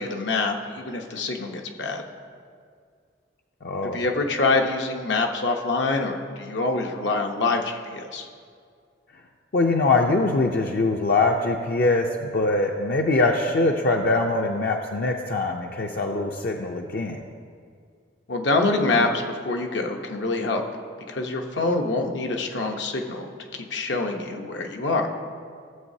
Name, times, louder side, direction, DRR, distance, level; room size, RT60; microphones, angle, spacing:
voice 1, 0.0-2.0 3.8-8.3 18.3-20.6 21.1-23.3 23.5-25.1, left 3 dB, 80° left, 2 dB, 0.9 m, -25 dB
voice 2, 3.6-4.0 9.5-17.2, left 2 dB, 55° left, 2 dB, 0.5 m, -23 dB
16.0 x 7.3 x 2.7 m, 2.1 s
head